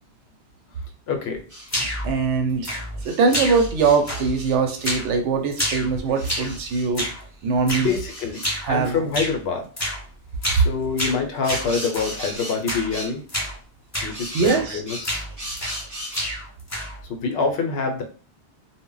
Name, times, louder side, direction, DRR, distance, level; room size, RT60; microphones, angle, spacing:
voice 1, 1.1-1.4 7.8-9.7 10.5-13.2 14.0-15.3 17.1-18.0, left 5 dB, 70° left, 4 dB, 0.8 m, -26 dB
sound 1, 1.5-1.7 3.0-5.0 6.1-6.9 7.8-8.6 11.4-12.6 12.9-13.1 14.1-16.3, equal, 20° right, 0.7 m, -36 dB
sound 2, 1.7-2.1 2.6-3.0 3.3-3.8 4.1-4.5 4.8-5.1 5.5-6.6 6.9-7.2 7.7-7.9 8.4-8.7 9.1-9.4 9.8-10.0 10.4-10.7 11.0-12.1 12.7-12.9 13.3-13.5 13.9-14.2 14.4-14.7 15.0-15.8 16.1-17.0, equal, 20° left, 0.5 m, -28 dB
voice 2, 2.0-2.8 3.0-7.1 7.4-7.9 8.6-9.0 14.3-14.8, right 4 dB, 90° right, 5 dB, 0.9 m, -22 dB
2.1 x 2.0 x 3.7 m, 0.39 s
omnidirectional pair, 1.2 m